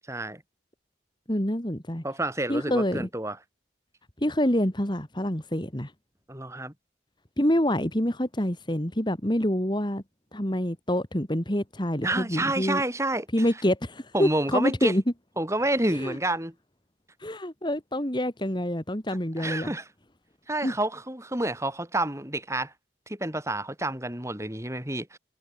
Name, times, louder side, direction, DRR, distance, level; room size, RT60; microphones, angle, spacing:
voice 1, 0.1-0.4 2.0-3.4 6.3-6.7 12.0-13.3 14.1-14.9 15.4-16.5 19.4-19.8 20.5-22.7 23.1-25.2, right 1 dB, 15° right, 3.7 m, -29 dB
voice 2, 1.3-2.0 2.5-3.1 4.2-5.9 7.4-10.0 10.3-12.8 13.3-15.0 15.9-16.2 17.2-19.7 20.6-20.7, equal, 25° left, 2.6 m, -27 dB
head